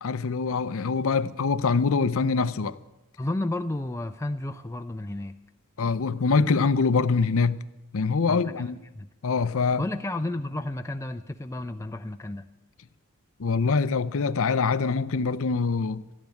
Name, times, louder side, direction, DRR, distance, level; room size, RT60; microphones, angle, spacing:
voice 1, 0.0-2.8 5.8-7.6 7.9-8.8 9.2-9.8 13.4-16.0, left 4 dB, 70° left, 0.6 m, -24 dB
voice 2, 3.2-5.4 8.3-9.1 9.8-12.5, left 1 dB, 15° left, 0.5 m, -32 dB
13.5 x 10.5 x 9.9 m
head